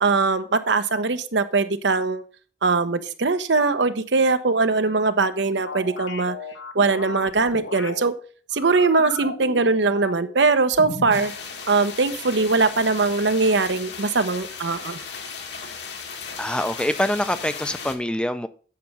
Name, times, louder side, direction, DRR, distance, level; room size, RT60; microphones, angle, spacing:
voice 1, 0.0-2.2 2.6-6.4 6.7-8.1 8.5-11.3 11.7-15.0, right 3 dB, 80° right, 0.8 m, -21 dB
sound 1, 5.7-8.0 8.5-10.4 10.7-11.3, left 3 dB, 85° left, 1.2 m, -35 dB
sound 2, 11.1-18.0, left 5 dB, 70° left, 1.5 m, -36 dB
voice 2, 16.4-18.5, left 1 dB, 5° left, 0.4 m, -25 dB
8.5 x 5.9 x 5.3 m
head